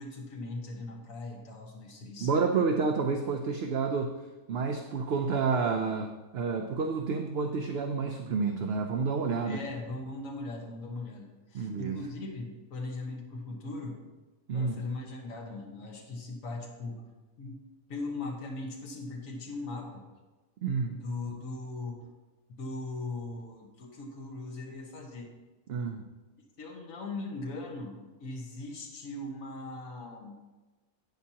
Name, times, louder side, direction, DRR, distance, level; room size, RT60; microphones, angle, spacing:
voice 1, 0.0-2.3 9.4-14.0 14.5-17.1 17.4-17.6 17.9-20.1 20.9-22.1 22.6-25.3 26.6-30.5, left 2 dB, 70° left, 0 dB, 1.7 m, -39 dB
voice 2, 2.2-4.1 4.5-9.6 11.5-12.0 14.5-14.8 20.6-21.0 25.7-26.0, right 5 dB, 60° right, 4 dB, 0.7 m, -29 dB
12.0 x 8.6 x 2.8 m, 1.2 s
omnidirectional pair, 1.5 m